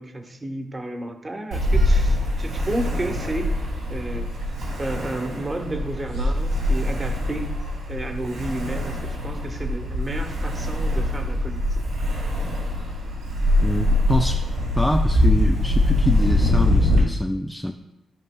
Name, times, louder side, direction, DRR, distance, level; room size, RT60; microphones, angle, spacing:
voice 1, 0.0-4.4 4.8-7.5 7.9-11.8, right 1 dB, 35° right, 4 dB, 1.3 m, -32 dB
Ocean, 1.5-17.0, left 1 dB, 85° right, 2.4 m, -23 dB
voice 2, 13.6-14.4 14.7-17.7, equal, 10° left, 4 dB, 0.5 m, -25 dB
12.5 x 5.3 x 2.3 m, 0.98 s
supercardioid pair, 50°, 0 cm